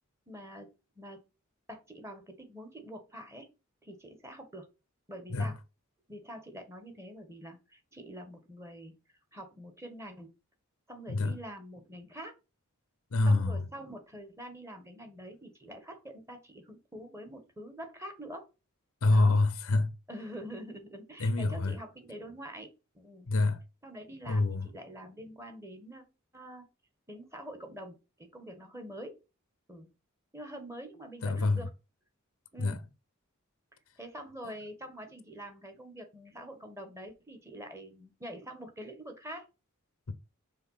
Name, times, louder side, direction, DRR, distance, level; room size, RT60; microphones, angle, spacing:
voice 1, 0.3-0.7 0.9-1.2 1.7-3.5 3.8-4.7 5.1-5.6 6.1-8.9 9.3-10.3 10.9-12.3 13.2-18.5 19.1-19.4 20.1-23.3 23.8-26.0 26.3-26.6 27.1-28.0 28.3-29.1 29.7-29.9 30.3-31.7 32.5-32.8 34.0-39.5, equal, 15° right, 1.4 m, -45 dB
voice 2, 13.1-13.6 19.0-19.9 21.2-21.8 23.3-23.6 24.3-24.7 31.2-31.7 32.6-32.8 40.1-40.2, left 2 dB, 80° left, 0.7 m, -26 dB
5.7 x 3.6 x 5.6 m
head